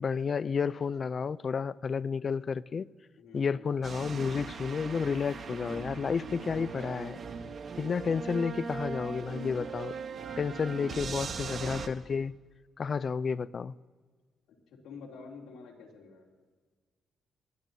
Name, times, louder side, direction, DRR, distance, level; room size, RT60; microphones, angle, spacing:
voice 1, 0.0-2.9 3.3-7.2 7.8-9.9 10.4-12.3 12.8-13.7, left 5 dB, 45° left, 0.3 m, -31 dB
voice 2, 3.2-3.7 8.3-8.7 10.5-11.5 14.7-16.3, left 5 dB, 75° left, 2.9 m, -49 dB
sound 1, 3.8-11.9, right 5 dB, 50° right, 1.0 m, -39 dB
20.5 x 13.5 x 2.7 m
cardioid pair, 90°, 0 cm